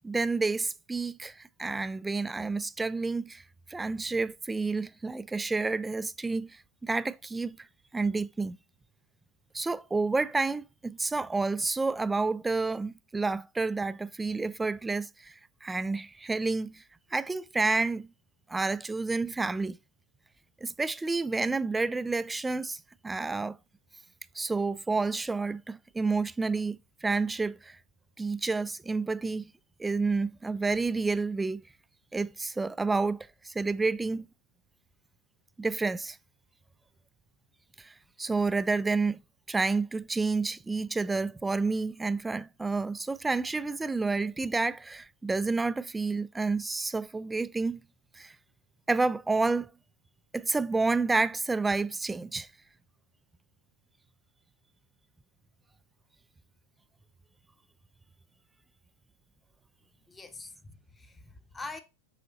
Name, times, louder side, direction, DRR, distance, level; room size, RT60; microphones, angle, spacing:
voice 1, 0.0-3.4 3.7-7.6 7.9-8.6 9.5-15.3 15.6-16.8 17.1-18.1 18.5-19.8 20.6-23.6 24.4-27.8 28.2-29.4 29.8-31.6 32.1-34.3 35.6-36.2 37.8-39.2 39.5-47.8 48.2-48.4 48.9-49.7 50.3-52.5, right 3 dB, 10° right, 0.3 m, -29 dB
voice 2, 60.1-61.8, left 3 dB, 10° left, 0.9 m, -44 dB
7.8 x 5.0 x 3.8 m
figure-of-eight pair, 90°, 0 cm